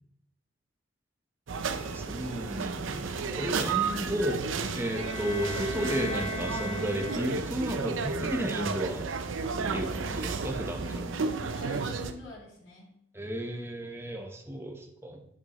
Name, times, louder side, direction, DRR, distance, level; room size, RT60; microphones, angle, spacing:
sound 1, 1.5-12.1, right 4 dB, 80° right, 0.6 m, -33 dB
voice 1, 1.8-4.4 4.7-9.1 9.7-11.1 13.1-15.3, equal, 10° right, 2 dB, 1.0 m, -33 dB
sound 2, 4.4-7.6, left 1 dB, 30° left, 0.9 m, -39 dB
voice 2, 10.8-12.9, left 1 dB, 85° left, -8 dB, 3.5 m, -45 dB
8.2 x 7.1 x 3.0 m, 0.69 s
head